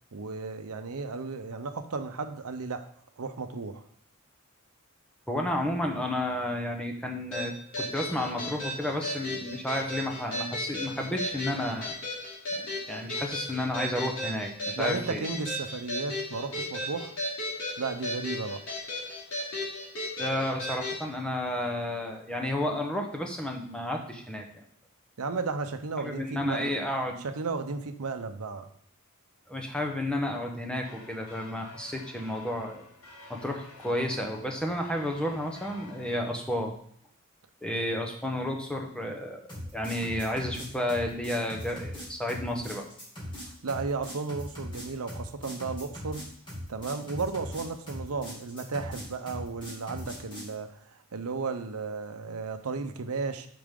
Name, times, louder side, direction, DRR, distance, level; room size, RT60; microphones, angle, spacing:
voice 1, 0.1-2.8 3.2-3.8 14.8-17.1 17.8-18.6 25.2-26.7 27.2-28.7 43.4-46.2 46.7-53.5, right 4 dB, 80° right, 8 dB, 0.7 m, -34 dB
voice 2, 5.3-11.9 12.5-15.3 20.2-24.4 26.0-27.2 29.5-32.8 33.3-36.7 37.6-39.4 39.7-42.8, left 1 dB, 5° left, 2 dB, 0.9 m, -31 dB
sound 1, 7.3-21.0, left 1 dB, 60° left, 2.8 m, -35 dB
sound 2, 30.8-36.2, left 2 dB, 85° left, 1.9 m, -50 dB
sound 3, 39.5-50.5, equal, 20° left, 2.2 m, -40 dB
8.5 x 5.8 x 3.7 m, 0.62 s
head